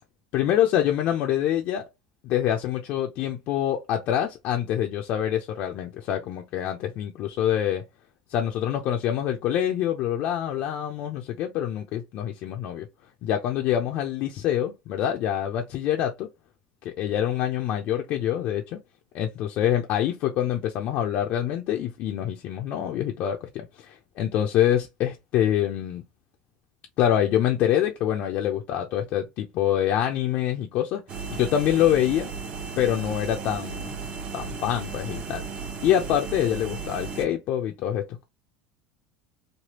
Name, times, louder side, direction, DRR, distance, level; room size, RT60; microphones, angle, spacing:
voice 1, 0.3-1.9 2.2-7.8 8.3-12.9 13.2-16.3 16.8-18.8 19.1-26.0 27.0-32.3 32.8-34.0 34.3-35.4 35.8-38.2, left 11 dB, 55° left, 0.5 m, -25 dB
sound 1, 31.1-37.3, right 5 dB, 35° right, 0.8 m, -35 dB
3.3 x 2.3 x 2.9 m
supercardioid pair, 135°, 3 cm